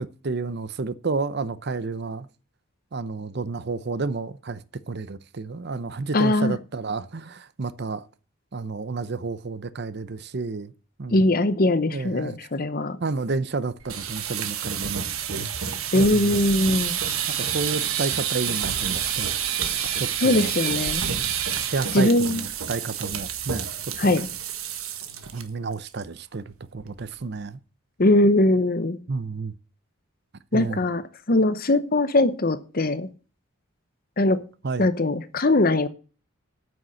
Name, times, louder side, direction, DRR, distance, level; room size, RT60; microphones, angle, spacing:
voice 1, 0.0-2.3 2.9-8.1 8.5-10.7 11.0-11.3 11.9-12.4 13.0-15.5 15.9-16.4 17.4-19.3 20.0-20.5 21.6-24.1 25.3-27.6 29.1-29.5 30.5-30.9 34.6-34.9, right 4 dB, 50° right, 0.6 m, -31 dB
voice 2, 6.1-6.5 11.1-13.0 15.9-17.0 20.2-21.1 21.9-22.4 24.0-24.3 28.0-29.0 30.5-31.0 31.3-33.1 34.2-34.4 34.8-35.9, left 2 dB, 45° left, 0.8 m, -21 dB
sound 1, 13.8-25.4 25.7-26.0 26.3-26.4 26.8-27.2, right 8 dB, 80° right, 1.5 m, -29 dB
9.3 x 6.5 x 7.6 m
head